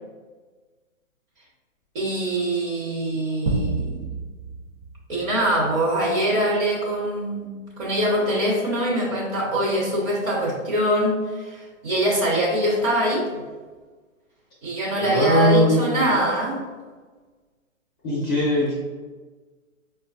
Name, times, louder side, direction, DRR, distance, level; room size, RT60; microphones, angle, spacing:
voice 1, 1.9-4.1 5.1-13.5 14.6-16.6, right 1 dB, 20° right, -5 dB, 0.7 m, -23 dB
sound 1, 3.5-6.0, right 3 dB, 70° right, 0.8 m, -30 dB
voice 2, 15.0-16.2 18.0-18.7, equal, 20° left, -6 dB, 0.5 m, -20 dB
4.8 x 2.2 x 2.3 m, 1.4 s
hypercardioid pair, 130°, 41 cm